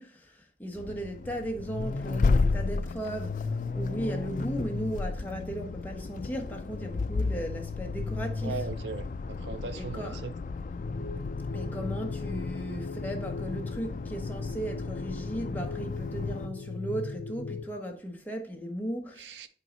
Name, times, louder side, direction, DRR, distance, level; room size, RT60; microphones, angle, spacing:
voice 1, 0.0-8.6 9.7-10.2 11.5-19.5, right 1 dB, 10° left, 1.1 m, -36 dB
Accelerating revving vroom, 0.8-16.5, left 3 dB, 45° left, 0.3 m, -33 dB
voice 2, 8.4-10.3 19.2-19.5, right 4 dB, 85° right, 0.5 m, -38 dB
sound 1, 10.8-17.6, left 4 dB, 75° left, 0.9 m, -38 dB
8.2 x 3.9 x 5.2 m
head